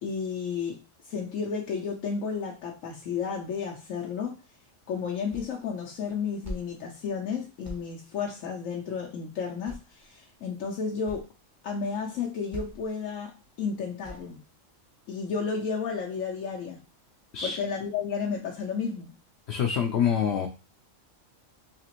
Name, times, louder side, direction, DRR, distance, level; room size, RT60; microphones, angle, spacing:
voice 1, 0.0-4.3 4.9-11.3 11.6-14.4 15.1-16.8 17.4-19.1, left 5 dB, 90° left, 1.1 m, -32 dB
sound 1, 5.3-5.6 5.9-6.7 7.0-7.2 7.6-7.9 9.0-9.1 9.6-10.1 10.6-10.7 10.9-11.3 12.0-12.2 12.5-12.9 13.3-13.5 14.0-14.3, equal, 15° right, 0.7 m, -41 dB
voice 2, 19.5-20.5, left 8 dB, 65° left, 0.8 m, -26 dB
4.1 x 2.9 x 2.9 m
omnidirectional pair, 1.3 m